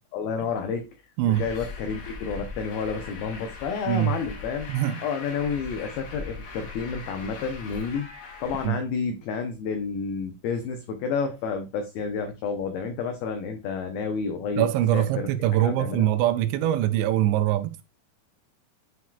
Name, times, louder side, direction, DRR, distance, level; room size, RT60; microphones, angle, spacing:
voice 1, 0.1-0.9 1.4-4.7 5.0-8.1 8.4-14.7 14.9-15.0 15.6-16.1, left 5 dB, 90° left, 2.1 m, -30 dB
Truck, 1.3-8.7, left 4 dB, 65° left, 3.4 m, -40 dB
voice 2, 4.7-5.0 8.6-8.8 14.6-17.8, right 12 dB, 85° right, 2.7 m, -23 dB
9.4 x 4.6 x 2.3 m
omnidirectional pair, 5.3 m